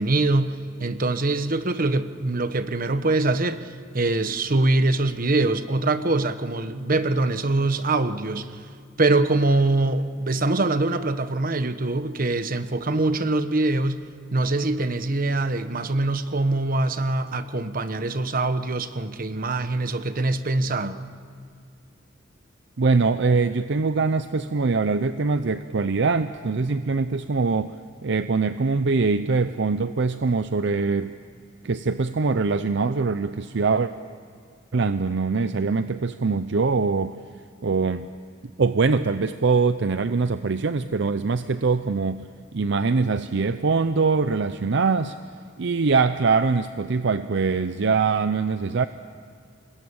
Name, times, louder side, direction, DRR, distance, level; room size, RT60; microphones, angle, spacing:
voice 1, 0.0-8.7 9.0-14.1 14.3-21.0, right 2 dB, 45° right, 11 dB, 1.1 m, -23 dB
voice 2, 22.8-27.7 28.0-31.1 31.6-33.9 34.7-37.1 37.6-38.1 38.6-42.2 42.5-45.2 45.6-48.9, right 4 dB, 65° right, 11 dB, 0.6 m, -23 dB
27.0 x 20.5 x 8.8 m, 2.2 s
head